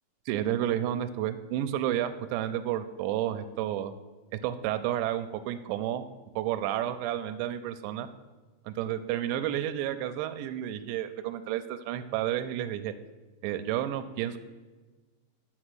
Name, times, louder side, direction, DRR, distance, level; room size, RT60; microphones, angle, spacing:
voice 1, 0.3-3.9 4.4-6.0 6.4-8.1 8.7-12.9 13.4-14.4, right 11 dB, 85° right, 9 dB, 2.7 m, -31 dB
7.4 x 6.2 x 7.9 m, 1.3 s
omnidirectional pair, 5.2 m